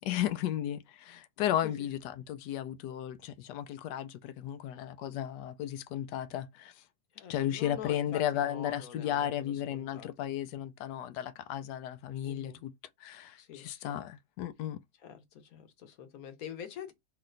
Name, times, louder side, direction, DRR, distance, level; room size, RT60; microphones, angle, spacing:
voice 1, 0.0-6.8 7.3-12.7 13.0-14.8, left 11 dB, 90° left, 1.2 m, -34 dB
voice 2, 7.1-10.3 12.2-12.6 13.4-14.0 15.0-16.9, left 9 dB, 65° left, 1.3 m, -46 dB
3.3 x 2.9 x 3.8 m
omnidirectional pair, 1.7 m